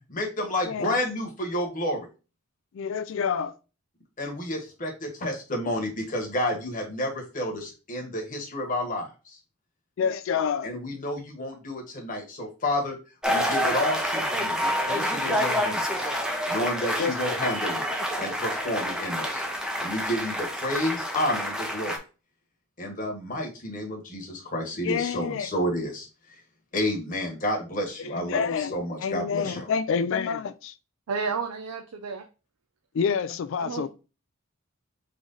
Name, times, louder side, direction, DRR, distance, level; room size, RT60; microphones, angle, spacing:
voice 1, 0.1-2.1 4.2-9.4 10.6-13.0 13.3-16.1 16.5-17.9 18.2-19.4 19.8-22.0 22.8-26.1 26.7-29.7, left 1 dB, 35° left, 1.2 m, -30 dB
voice 2, 2.7-3.5 10.0-10.7 15.3-15.7 17.0-17.4 24.8-25.5 28.0-30.7 32.9-33.9, left 6 dB, 60° left, 0.3 m, -28 dB
sound 1, 13.2-22.0, equal, 5° right, 0.5 m, -28 dB
voice 3, 31.1-32.3 33.6-33.9, right 5 dB, 85° right, 0.5 m, -31 dB
3.9 x 3.1 x 3.8 m
head